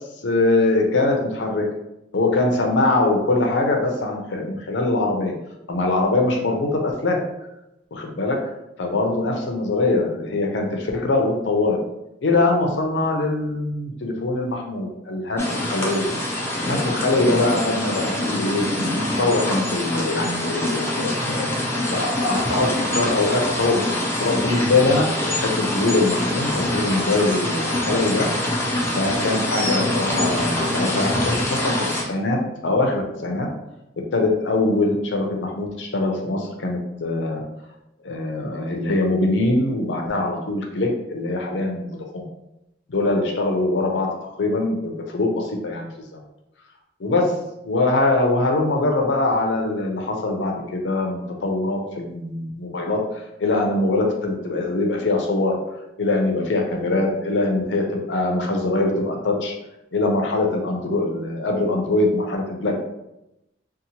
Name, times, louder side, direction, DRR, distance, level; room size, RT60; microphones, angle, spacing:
voice 1, 0.2-1.7 2.1-5.3 5.7-7.2 7.9-8.4 8.8-11.8 12.2-16.1 16.7-18.7 19.0-21.5 21.9-25.1 25.4-28.3 28.9-33.5 34.1-37.4 38.0-42.3 42.9-46.2 47.0-47.3 47.6-53.0 53.4-55.6 56.0-59.5 59.9-62.8, left 2 dB, 80° left, 1 dB, 0.5 m, -22 dB
sound 1, 15.4-32.0, left 1 dB, 15° left, 0.4 m, -25 dB
2.8 x 2.1 x 2.8 m, 0.88 s
head